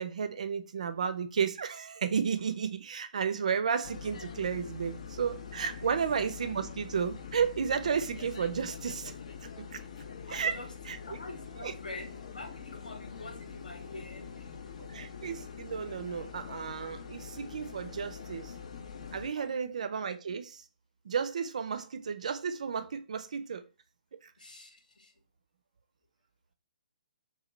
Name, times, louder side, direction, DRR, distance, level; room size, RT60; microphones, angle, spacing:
voice 1, 0.0-9.1 9.6-9.8 10.3-11.2 11.6-11.7 14.9-18.5 19.1-20.6 21.0-23.6 24.2-24.3, right 6 dB, 55° right, 0.4 m, -33 dB
sound 1, 3.8-19.3, left 6 dB, 50° left, 0.4 m, -44 dB
voice 2, 10.3-10.7 11.0-14.6 19.3-19.7 24.4-25.1, left 2 dB, 70° left, 0.7 m, -46 dB
2.8 x 2.3 x 3.1 m
figure-of-eight pair, 130°, 5 cm